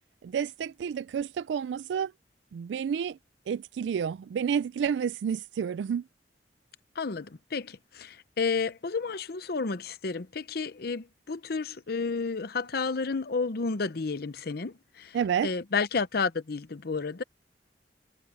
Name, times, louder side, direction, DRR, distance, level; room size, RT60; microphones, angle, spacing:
voice 1, 0.2-2.1 2.5-3.2 3.5-6.0 15.1-15.5, right 7 dB, 85° right, 0.3 m, -30 dB
voice 2, 7.0-15.2 15.4-17.2, left 4 dB, 60° left, 0.7 m, -31 dB
head